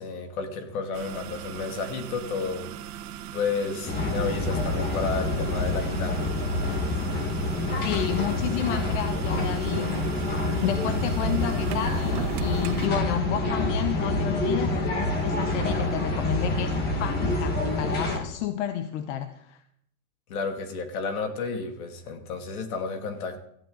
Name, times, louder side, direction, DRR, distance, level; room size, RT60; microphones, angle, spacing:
voice 1, 0.0-2.9 3.3-6.2 20.3-23.4, left 4 dB, 65° left, 5 dB, 2.9 m, -32 dB
sound 1, 0.9-12.9, right 11 dB, 70° right, 1.7 m, -39 dB
sound 2, 3.8-18.2, left 2 dB, 20° left, 2.2 m, -27 dB
voice 2, 7.8-10.3 10.6-19.6, left 11 dB, 50° left, 9 dB, 1.0 m, -31 dB
18.0 x 14.5 x 4.1 m, 0.72 s
supercardioid pair, 170°, 45 cm